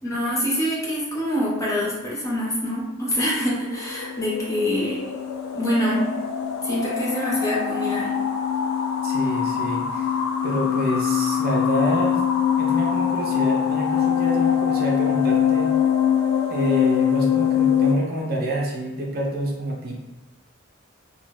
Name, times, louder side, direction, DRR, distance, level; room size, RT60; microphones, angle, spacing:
voice 1, 0.0-5.0 5.5-6.1 6.6-8.1, equal, 15° left, -6 dB, 0.8 m, -25 dB
sound 1, 3.3-17.9, left 8 dB, 85° left, 0.3 m, -23 dB
voice 2, 9.0-10.1 10.4-12.2 12.6-15.7 16.5-19.9, right 1 dB, 50° right, -1 dB, 0.6 m, -27 dB
2.8 x 2.3 x 3.1 m, 1.1 s
head